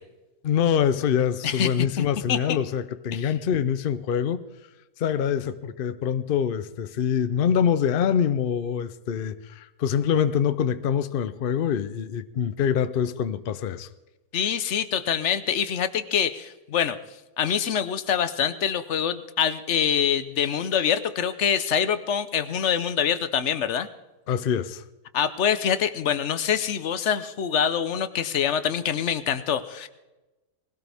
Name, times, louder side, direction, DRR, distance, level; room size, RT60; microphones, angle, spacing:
voice 1, 0.4-4.4 5.0-13.9 24.3-24.8, left 8 dB, 75° left, 0.5 m, -25 dB
voice 2, 1.4-2.6 3.1-3.3 14.3-17.0 17.4-23.9 25.1-29.9, left 8 dB, 55° left, 0.9 m, -25 dB
20.0 x 16.5 x 3.5 m
omnidirectional pair, 1.7 m